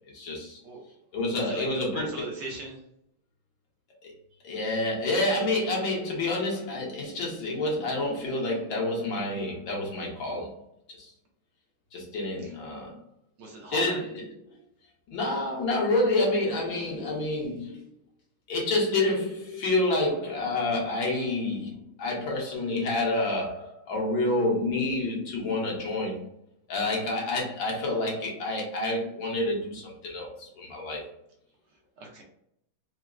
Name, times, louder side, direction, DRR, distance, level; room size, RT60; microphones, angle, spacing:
voice 1, 0.1-0.6 1.1-2.3 4.4-10.6 10.9-11.1 11.9-13.0 13.7-14.2 15.1-17.8 18.5-26.3 26.7-31.0, left 2 dB, 70° left, -2 dB, 1.7 m, -28 dB
voice 2, 1.2-2.8 12.4-12.6 13.4-14.0 32.0-32.2, right 2 dB, 65° right, 0 dB, 1.3 m, -40 dB
4.4 x 2.0 x 2.4 m, 0.76 s
omnidirectional pair, 2.2 m